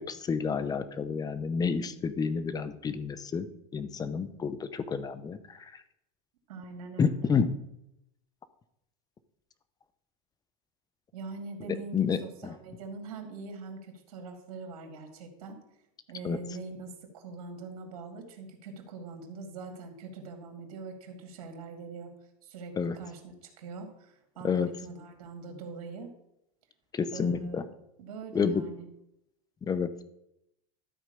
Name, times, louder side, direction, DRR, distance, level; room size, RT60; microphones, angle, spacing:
voice 1, 0.1-3.5 3.7-5.8 7.0-7.6 11.7-12.5 16.2-16.4 22.8-23.0 24.4-24.7 26.9-27.6 28.3-28.6 29.6-30.0, left 5 dB, 20° left, 13 dB, 0.7 m, -30 dB
voice 2, 6.5-7.3 11.1-15.6 16.1-22.1 22.4-26.1 27.1-27.7 28.0-28.9, right 3 dB, 90° right, 4 dB, 2.3 m, -43 dB
13.0 x 4.5 x 6.7 m, 0.83 s
supercardioid pair, 130°, 19 cm